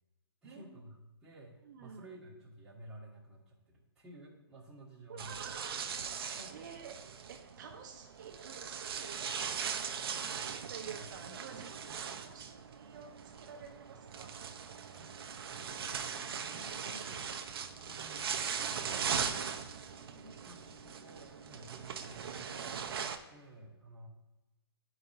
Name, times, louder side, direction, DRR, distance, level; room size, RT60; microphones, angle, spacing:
voice 1, 0.4-5.4 6.2-6.9 10.1-10.3 10.8-11.1 11.8-12.0 14.9-17.4 17.7-18.6 19.1-24.1, right 1 dB, ahead, -12 dB, 1.4 m, -54 dB
voice 2, 1.6-2.1 5.1-5.9 6.2-9.7 10.2-14.4, right 6 dB, 45° right, 4 dB, 1.0 m, -50 dB
sound 1, 5.2-23.2, right 7 dB, 60° right, 0.7 m, -40 dB
sound 2, 7.9-21.9, right 4 dB, 30° left, 1.6 m, -61 dB
11.5 x 4.9 x 2.8 m, 1.1 s
hypercardioid pair, 150°, 14 cm